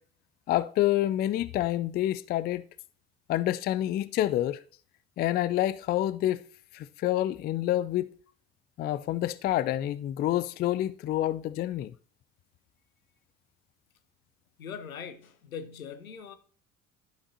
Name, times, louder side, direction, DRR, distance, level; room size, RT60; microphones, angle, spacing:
voice 1, 0.5-2.6 3.3-4.6 5.2-6.4 6.7-8.1 8.8-11.9, left 13 dB, 25° left, 0.3 m, -28 dB
voice 2, 14.6-16.4, left 7 dB, 85° left, 0.8 m, -41 dB
12.0 x 5.1 x 2.7 m
figure-of-eight pair, 55°, 41 cm